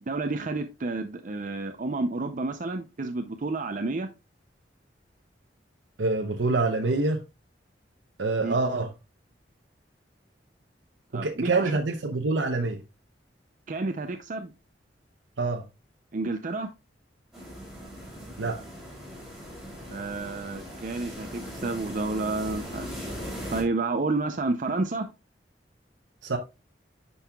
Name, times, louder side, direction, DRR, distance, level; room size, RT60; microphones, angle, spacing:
voice 1, 0.0-4.1 8.4-8.5 11.1-11.7 13.7-14.5 16.1-16.7 19.9-23.2 23.5-25.1, right 3 dB, 45° right, 0.5 m, -30 dB
voice 2, 6.0-7.2 8.2-8.9 11.1-12.8 15.4-15.6 18.4-18.6 26.2-26.4, right 3 dB, 90° right, 0.8 m, -26 dB
sound 1, 17.3-23.6, equal, 5° right, 4.5 m, -39 dB
10.0 x 5.5 x 2.3 m
head